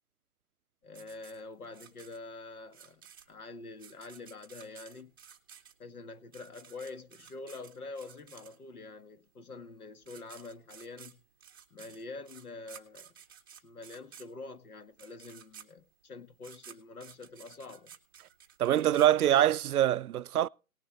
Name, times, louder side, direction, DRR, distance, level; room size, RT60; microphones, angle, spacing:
voice 1, 0.8-5.1 5.8-11.2 11.7-13.1 13.6-18.0, left 3 dB, 80° left, 1.9 m, -46 dB
sound 1, 0.9-8.9 9.7-9.8 10.0-19.7, right 8 dB, 15° right, 0.7 m, -54 dB
voice 2, 18.6-20.5, right 11 dB, 85° right, 0.5 m, -24 dB
18.5 x 6.8 x 4.0 m
hypercardioid pair, 160°, 43 cm